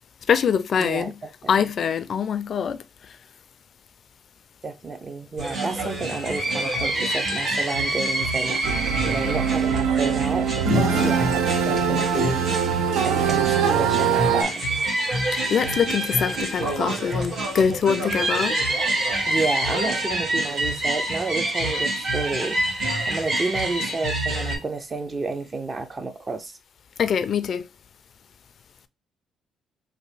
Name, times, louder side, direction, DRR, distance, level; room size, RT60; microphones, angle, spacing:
voice 1, 0.3-1.1 1.5-2.8 10.6-11.2 15.3-18.6 27.0-27.7, left 7 dB, 55° left, 0.3 m, -24 dB
voice 2, 0.8-1.1 1.4-1.5 4.6-8.6 9.1-12.4 13.0-14.7 19.3-22.6 23.1-26.6, right 3 dB, 30° right, 0.6 m, -30 dB
sound 1, 5.4-24.6, right 1 dB, 60° right, 1.9 m, -27 dB
sound 2, 8.6-14.4, right 7 dB, 90° right, 0.4 m, -22 dB
3.3 x 2.5 x 3.3 m
cardioid pair, 90°, 0 cm